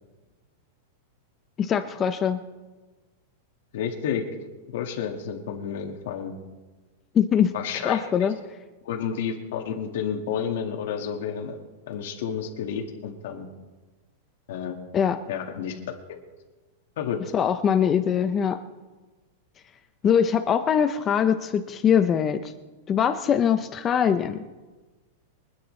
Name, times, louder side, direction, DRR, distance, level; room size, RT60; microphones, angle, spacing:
voice 1, 1.6-2.4 7.1-7.5 7.8-8.3 14.9-15.2 17.3-18.6 20.0-22.5 22.9-24.4, left 8 dB, 20° left, 9 dB, 0.6 m, -22 dB
voice 2, 3.7-4.3 4.7-6.3 7.5-8.3 8.8-11.6 11.9-13.5 14.5-14.8 15.3-15.8 16.1-16.2 17.0-17.2, left 7 dB, 65° left, 1 dB, 1.9 m, -30 dB
24.5 x 9.7 x 3.3 m, 1.2 s
supercardioid pair, 155°, 0 cm